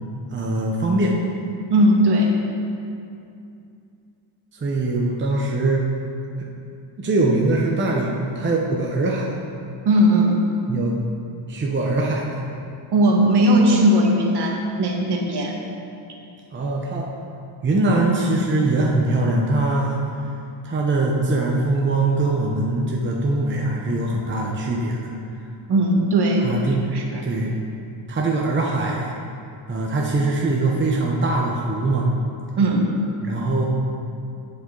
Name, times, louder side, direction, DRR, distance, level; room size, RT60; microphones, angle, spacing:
voice 1, 0.3-1.2 4.5-5.9 7.0-9.3 10.7-11.0 11.5-12.4 16.5-17.1 17.6-20.1 20.6-25.0 26.4-26.9 27.2-27.5 28.1-29.1 29.7-32.1 33.2-33.6, right 2 dB, 25° right, -2 dB, 0.9 m, -22 dB
voice 2, 1.7-2.3 9.8-10.5 12.9-15.5 25.7-26.5 26.9-27.2 32.6-32.8, right 1 dB, 55° right, 0 dB, 1.6 m, -18 dB
16.0 x 5.7 x 3.9 m, 2.6 s
cardioid pair, 135°, 49 cm